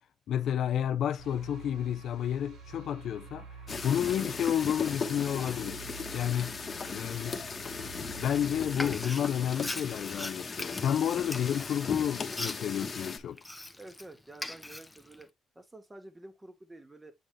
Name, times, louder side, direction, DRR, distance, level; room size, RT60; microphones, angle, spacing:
voice 1, 0.3-3.5 3.8-5.8 6.1-6.6 6.9-7.4 8.2-13.4, left 10 dB, 70° left, 0.5 m, -30 dB
sound 1, 1.2-10.3, right 5 dB, 85° right, 3.4 m, -49 dB
sound 2, 3.7-13.2, left 4 dB, 35° left, 1.2 m, -37 dB
Frying (food), 8.7-14.0 14.3-15.2, left 1 dB, 10° left, 0.7 m, -40 dB
voice 2, 13.8-15.3 15.6-17.1, right 2 dB, 15° right, 1.8 m, -49 dB
7.7 x 4.0 x 3.3 m
cardioid pair, 90°, 0 cm